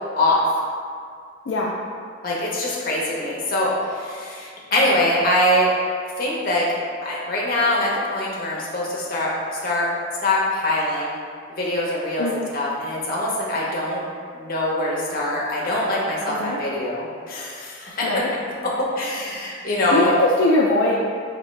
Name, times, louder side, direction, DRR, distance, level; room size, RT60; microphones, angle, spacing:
voice 1, 0.2-0.5 2.2-5.7 6.2-6.7 7.0-9.3 9.6-9.9 10.2-11.2 11.5-14.0 14.3-18.1 18.6-20.1, left 1 dB, 50° left, -5 dB, 0.8 m, -23 dB
voice 2, 16.3-16.6 18.0-18.3 19.9-21.0, left 2 dB, 70° left, -5 dB, 0.4 m, -20 dB
4.2 x 2.8 x 3.1 m, 2.1 s
head